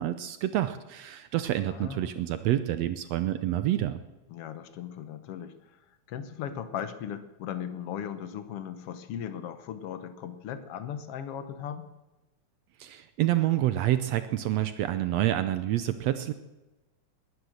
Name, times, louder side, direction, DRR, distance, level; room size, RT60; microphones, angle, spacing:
voice 1, 0.0-4.0 12.8-16.3, right 13 dB, 80° right, 11 dB, 1.5 m, -28 dB
voice 2, 1.7-2.2 4.3-11.9, left 9 dB, 65° left, 11 dB, 1.5 m, -38 dB
19.5 x 11.0 x 6.5 m, 1.1 s
omnidirectional pair, 3.8 m